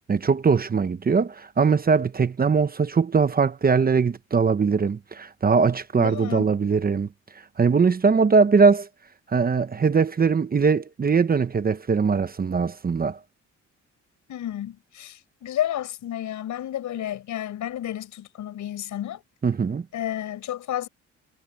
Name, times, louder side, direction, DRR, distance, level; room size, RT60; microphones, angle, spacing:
voice 1, 0.1-7.1 7.6-8.9 9.3-13.2 19.4-19.8, right 5 dB, 30° right, 1.0 m, -21 dB
voice 2, 5.9-6.6 14.3-19.2 19.9-20.9, left 11 dB, 75° left, 6.3 m, -31 dB
cardioid pair, 90°, 30 cm